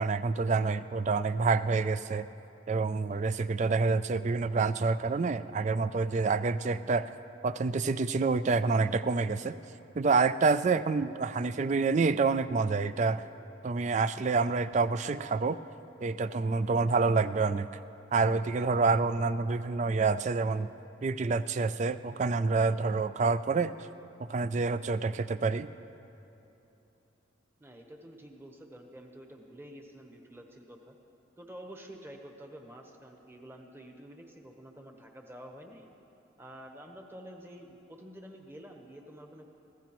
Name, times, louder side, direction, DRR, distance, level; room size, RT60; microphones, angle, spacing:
voice 1, 0.0-2.3 2.7-7.1 7.4-9.6 10.0-13.3 13.6-15.6 16.0-17.7 18.1-20.7 21.0-23.7 24.2-25.7, right 4 dB, 35° right, 13 dB, 0.3 m, -27 dB
voice 2, 27.6-31.0 31.4-35.9 36.4-39.5, equal, 10° right, 2 dB, 1.0 m, -49 dB
24.5 x 15.5 x 3.1 m, 2.9 s
head